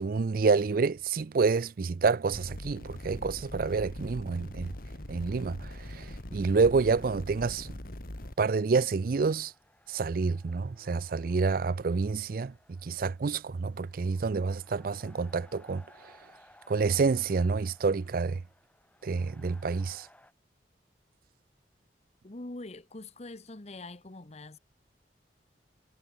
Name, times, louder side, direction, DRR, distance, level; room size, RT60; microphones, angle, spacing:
voice 1, 0.0-4.7 5.1-7.8 8.4-9.5 9.9-12.5 12.8-16.1 16.7-18.4 19.0-20.1, right 4 dB, 55° right, 0.4 m, -28 dB
sound 1, 2.3-8.3, left 1 dB, 55° left, 2.5 m, -42 dB
sound 2, 3.8-20.3, left 1 dB, 10° left, 5.2 m, -62 dB
voice 2, 22.2-24.6, left 2 dB, 40° left, 1.1 m, -43 dB
head